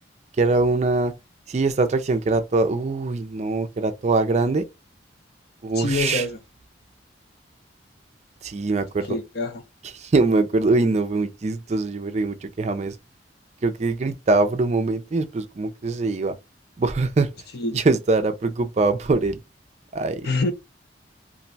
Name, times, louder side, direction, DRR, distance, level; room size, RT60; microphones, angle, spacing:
voice 1, 0.4-1.1 1.5-4.6 5.6-6.3 8.4-9.1 9.9-13.0 13.6-16.4 16.8-17.3 17.7-19.4 19.9-20.3, right 3 dB, 40° right, 0.4 m, -22 dB
voice 2, 5.7-6.4 9.0-9.6 17.5-17.8 20.2-20.5, left 2 dB, 60° left, 0.6 m, -25 dB
2.5 x 2.1 x 3.9 m
head